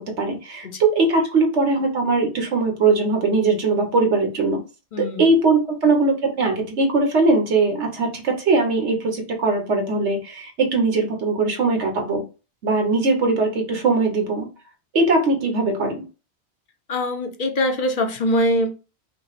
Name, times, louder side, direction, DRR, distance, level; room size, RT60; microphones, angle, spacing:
voice 1, 0.2-4.6 5.0-12.2 12.6-14.5 14.9-16.0, right 3 dB, 80° right, 1.5 m, -20 dB
voice 2, 4.9-5.4 16.9-18.8, left 1 dB, 50° left, 0.8 m, -23 dB
5.4 x 2.1 x 4.1 m
omnidirectional pair, 1.1 m